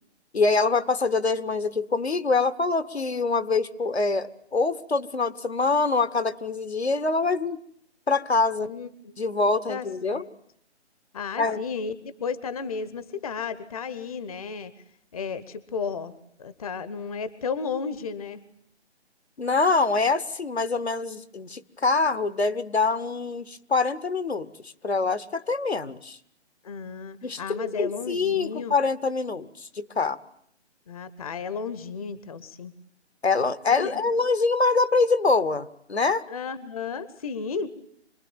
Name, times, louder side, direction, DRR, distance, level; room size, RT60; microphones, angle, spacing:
voice 1, 0.3-7.6 8.1-8.7 9.2-10.2 11.4-11.6 19.4-26.2 27.2-30.2 33.2-36.2, left 3 dB, 70° left, 12 dB, 1.3 m, -25 dB
voice 2, 8.6-9.4 9.7-10.3 11.1-14.7 15.1-16.1 16.4-18.4 26.6-28.7 30.9-32.7 33.8-33.9 36.3-37.7, left 5 dB, 35° left, 15 dB, 1.0 m, -33 dB
26.0 x 21.0 x 8.9 m, 0.69 s
figure-of-eight pair, 145°, 34 cm